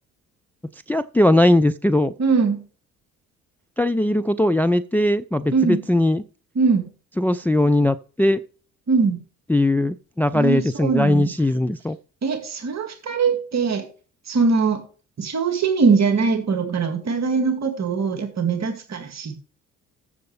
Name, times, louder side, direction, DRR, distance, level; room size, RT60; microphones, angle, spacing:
voice 1, 0.9-2.1 3.8-6.2 7.2-8.4 9.5-12.0, left 1 dB, 5° left, 0.4 m, -19 dB
voice 2, 2.2-2.6 5.5-5.8 6.6-6.9 8.9-9.2 10.3-11.3 12.2-13.8 14.3-14.8 15.2-19.4, right 5 dB, 40° right, 2.0 m, -21 dB
14.5 x 6.2 x 3.3 m
figure-of-eight pair, 50°, 41 cm